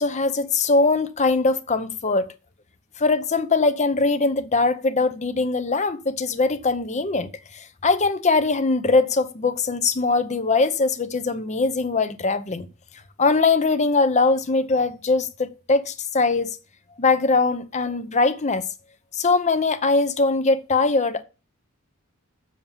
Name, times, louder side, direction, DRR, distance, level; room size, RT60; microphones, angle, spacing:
voice 1, 0.0-2.3 3.0-12.7 13.2-16.6 17.0-18.6 19.1-21.2, left 3 dB, 30° left, 0.7 m, -21 dB
7.2 x 7.0 x 7.2 m
head